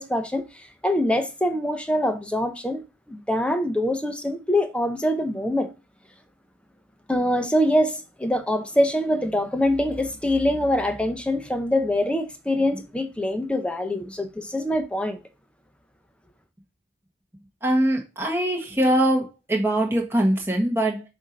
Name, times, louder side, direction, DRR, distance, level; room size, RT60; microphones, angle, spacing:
voice 1, 0.0-2.8 3.1-5.7 7.1-15.2, left 1 dB, 5° left, 0.6 m, -24 dB
voice 2, 17.6-21.0, right 1 dB, 10° right, 1.2 m, -22 dB
7.0 x 2.6 x 5.2 m
head